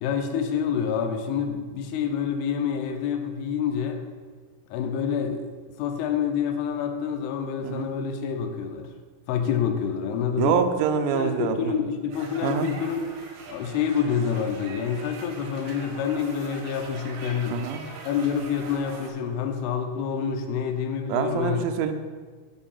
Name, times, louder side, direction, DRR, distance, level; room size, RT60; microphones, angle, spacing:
voice 1, 0.0-4.0 4.7-5.5 5.8-8.9 9.3-10.6 11.1-13.2 13.5-17.6 18.0-21.6, left 7 dB, 80° left, 5 dB, 2.4 m, -27 dB
voice 2, 10.4-11.7 12.4-12.7 17.5-17.8 21.1-21.9, right 7 dB, 85° right, 6 dB, 2.8 m, -25 dB
sound 1, 12.1-19.1, right 4 dB, 70° right, 2.9 m, -42 dB
7.7 x 4.7 x 7.0 m, 1.5 s
omnidirectional pair, 5.4 m